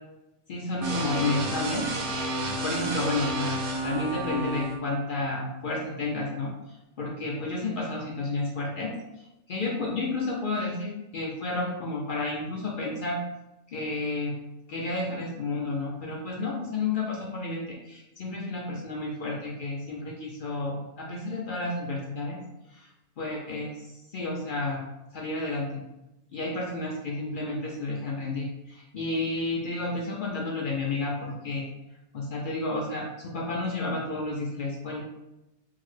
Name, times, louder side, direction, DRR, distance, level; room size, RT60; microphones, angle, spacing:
voice 1, 0.5-1.9 2.6-13.2 13.7-14.3 14.7-22.4 22.7-22.9 23.2-24.8 25.1-25.8 26.3-31.7 32.1-35.1, left 2 dB, 65° left, -3 dB, 0.5 m, -31 dB
sound 1, 0.8-4.8, right 1 dB, 90° right, 1.1 m, -30 dB
3.8 x 2.1 x 3.1 m, 0.95 s
omnidirectional pair, 1.5 m